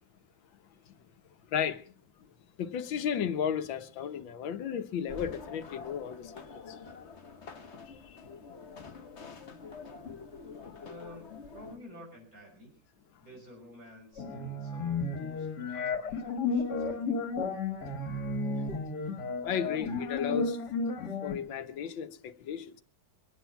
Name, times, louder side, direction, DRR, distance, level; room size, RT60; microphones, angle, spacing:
voice 1, 1.5-2.3 2.6-6.8 7.8-8.3 18.6-18.7 19.4-20.6 21.2-22.8, left 8 dB, 90° left, 1.8 m, -34 dB
sound 1, 5.1-11.8, left 5 dB, 40° left, 1.4 m, -46 dB
voice 2, 10.8-12.8 13.2-15.5 15.7-17.2, left 1 dB, 45° right, 6.9 m, -51 dB
sound 2, 14.2-21.3, left 3 dB, 60° left, 2.1 m, -33 dB
24.5 x 9.2 x 5.7 m
omnidirectional pair, 2.0 m